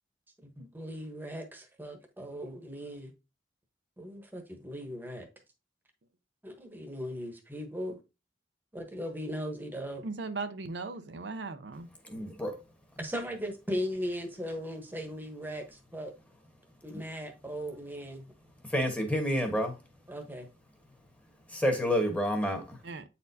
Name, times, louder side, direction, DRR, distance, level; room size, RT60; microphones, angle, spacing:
voice 1, 0.4-3.1 4.0-5.3 6.4-8.0 8.7-10.0 13.0-16.1 16.8-18.3 20.1-20.5, equal, 10° right, 1.1 m, -38 dB
voice 2, 10.0-11.9 22.8-23.0, right 3 dB, 80° right, 0.6 m, -38 dB
voice 3, 12.1-12.6 18.7-19.7 21.5-22.8, equal, 10° left, 1.2 m, -29 dB
8.5 x 4.2 x 2.7 m
head